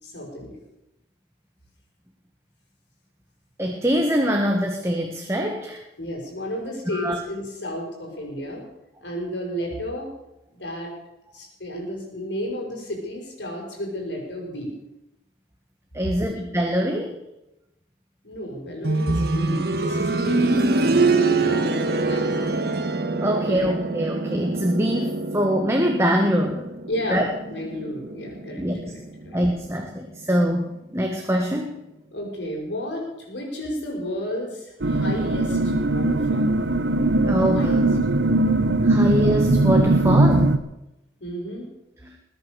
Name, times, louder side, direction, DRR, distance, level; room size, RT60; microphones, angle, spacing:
voice 1, 0.0-0.6 6.0-8.6 9.0-10.1 10.5-10.9 11.3-14.7 18.2-22.5 23.3-23.6 24.2-24.3 26.9-29.4 32.1-36.5 37.5-37.9 41.2-41.7, equal, 85° left, -1 dB, 6.2 m, -32 dB
voice 2, 3.6-5.8 6.9-7.2 15.9-17.1 23.2-26.6 27.1-27.2 28.5-28.9 29.3-30.7 30.9-31.8 37.2-37.8 38.8-40.6 42.0-42.1, equal, 15° right, 2 dB, 1.6 m, -23 dB
sound 1, 18.8-29.6 31.0-31.1, right 3 dB, 60° right, 1.4 m, -25 dB
sound 2, 34.8-40.6, right 2 dB, 90° right, 0.9 m, -20 dB
21.5 x 9.5 x 6.9 m, 0.90 s
head